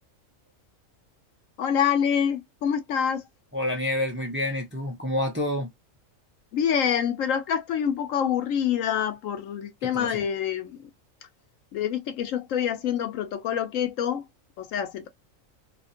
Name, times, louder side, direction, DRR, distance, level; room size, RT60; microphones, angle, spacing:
voice 1, 1.6-3.2 6.5-10.9 11.7-14.3 14.6-15.1, left 8 dB, 85° left, 1.0 m, -26 dB
voice 2, 3.5-5.7 9.9-10.1, left 1 dB, 15° right, 0.5 m, -28 dB
2.8 x 2.5 x 2.7 m
omnidirectional pair, 1.3 m